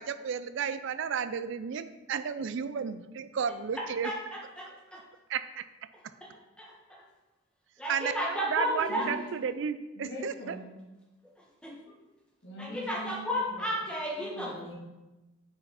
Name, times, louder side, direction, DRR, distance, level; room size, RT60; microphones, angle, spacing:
voice 1, 0.0-4.1 5.3-5.6 7.9-10.6, right 6 dB, 60° right, 12 dB, 0.4 m, -33 dB
voice 2, 4.0-5.0 6.2-6.3 6.6-6.7 7.8-9.0 11.6-11.7 12.6-14.6, equal, 5° left, -3 dB, 1.2 m, -33 dB
voice 3, 8.9-9.4 9.9-10.7 11.9-12.0 12.4-13.7 14.2-14.7, left 1 dB, 55° left, -3 dB, 1.6 m, -42 dB
5.3 x 4.8 x 5.0 m, 1.1 s
head